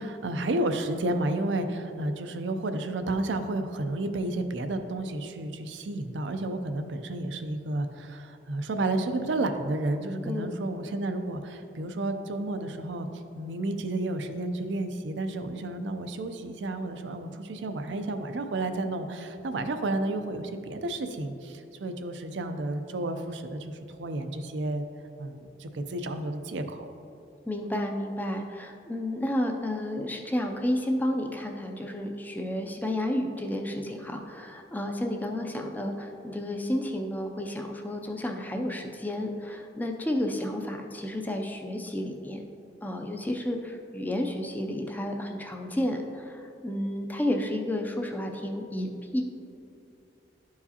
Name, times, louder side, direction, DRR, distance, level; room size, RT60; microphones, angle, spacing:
voice 1, 0.0-13.1 13.3-24.8 25.2-26.9, right 2 dB, 80° right, 7 dB, 0.5 m, -31 dB
voice 2, 10.2-10.6 27.5-42.4 42.8-49.2, left 1 dB, 10° left, 3 dB, 0.4 m, -31 dB
11.0 x 4.7 x 2.8 m, 2.6 s
head